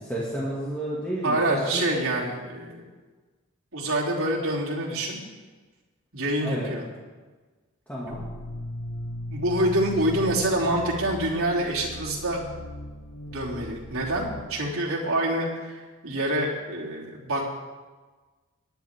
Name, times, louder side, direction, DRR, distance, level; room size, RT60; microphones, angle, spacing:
voice 1, 0.0-1.9 6.4-6.7 7.9-8.2, right 1 dB, 5° left, -7 dB, 2.1 m, -31 dB
voice 2, 1.2-2.9 3.7-5.3 6.1-6.8 9.3-12.4 13.3-17.4, right 1 dB, 75° right, -5 dB, 3.1 m, -26 dB
sound 1, 8.1-14.4, left 1 dB, 60° left, 1.1 m, -37 dB
18.5 x 10.5 x 3.6 m, 1.3 s
head